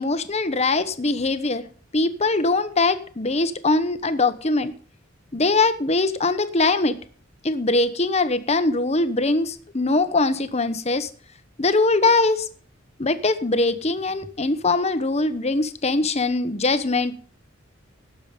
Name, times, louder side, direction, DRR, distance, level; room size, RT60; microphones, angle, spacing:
voice 1, 0.0-1.7 1.9-4.7 5.3-7.0 7.4-11.1 11.6-12.5 13.0-17.2, left 3 dB, 35° left, 12 dB, 1.0 m, -22 dB
17.5 x 7.2 x 5.3 m, 0.42 s
head